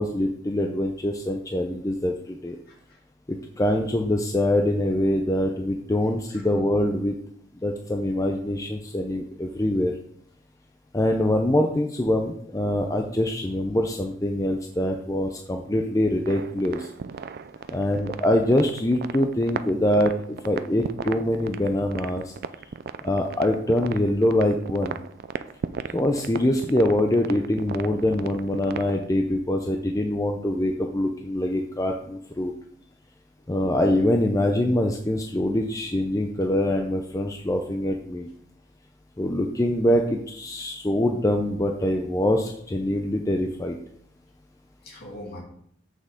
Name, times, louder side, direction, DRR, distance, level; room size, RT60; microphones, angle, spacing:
voice 1, 0.0-2.6 3.3-7.2 7.6-9.9 10.9-16.9 17.7-22.3 23.0-25.0 25.9-32.5 33.5-38.3 39.2-43.8, left 1 dB, 15° left, 3 dB, 0.5 m, -24 dB
voice 2, 2.7-3.0 6.3-6.5 13.1-13.2 17.5-17.8 25.7-25.9 33.6-33.8 44.8-45.4, left 1 dB, 55° left, -4 dB, 2.7 m, -44 dB
sound 1, 16.3-29.0, right 5 dB, 50° right, 0.4 m, -35 dB
7.7 x 6.4 x 3.6 m, 0.66 s
head